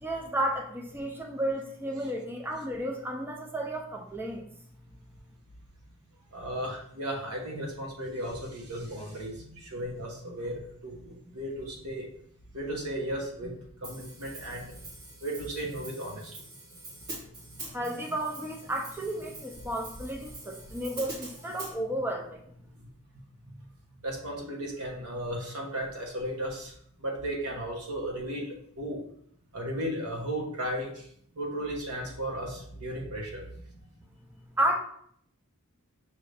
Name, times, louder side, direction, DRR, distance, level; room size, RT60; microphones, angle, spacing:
voice 1, 0.0-4.5 17.7-22.4 34.6-34.8, right 1 dB, 10° right, 0 dB, 0.5 m, -32 dB
voice 2, 6.3-12.1 12.5-14.7 15.2-16.4 17.4-17.5 22.8-22.9 24.0-26.7 27.0-29.0 29.5-31.1 31.4-33.4, right 1 dB, 90° right, 0 dB, 1.2 m, -35 dB
Hi-hat, 13.8-21.7, right 2 dB, 50° right, 1.8 m, -45 dB
5.9 x 2.6 x 3.3 m, 0.66 s
head